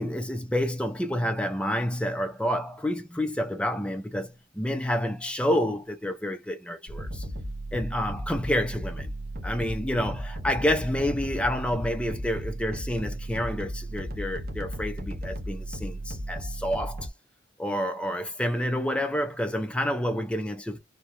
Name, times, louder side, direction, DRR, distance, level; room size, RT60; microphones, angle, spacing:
voice 1, 0.0-7.2 7.7-9.1 9.4-17.1 17.6-20.8, equal, 5° left, 0.5 m, -29 dB
sound 1, 6.9-17.1, right 1 dB, 50° right, 0.6 m, -35 dB
2.2 x 2.2 x 3.0 m
head